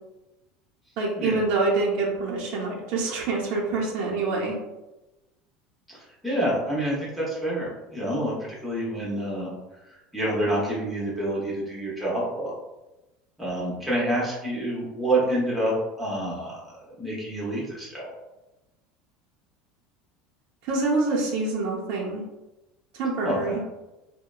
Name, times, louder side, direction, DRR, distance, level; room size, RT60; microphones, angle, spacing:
voice 1, 1.0-4.5 20.6-22.2 22.9-23.6, right 3 dB, 60° right, -2 dB, 0.6 m, -26 dB
voice 2, 5.9-9.5 9.9-12.5 13.4-18.1 23.2-23.6, right 1 dB, ahead, -7 dB, 0.8 m, -28 dB
2.7 x 2.1 x 2.3 m, 1.0 s
supercardioid pair, 145°, 3 cm